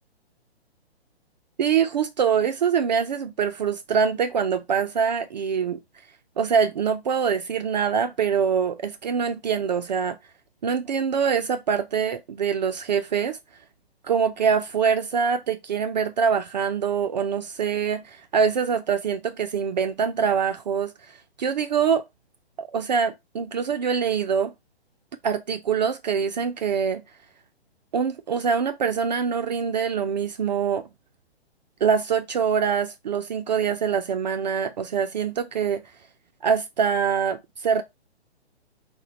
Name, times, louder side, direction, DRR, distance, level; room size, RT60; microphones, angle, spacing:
voice 1, 1.6-5.8 6.4-10.2 10.6-13.4 14.0-22.1 22.6-24.5 25.2-27.0 27.9-30.9 31.8-35.8 36.4-37.8, right 6 dB, 45° right, 0.4 m, -24 dB
4.9 x 2.2 x 4.1 m
figure-of-eight pair, 130°, 32 cm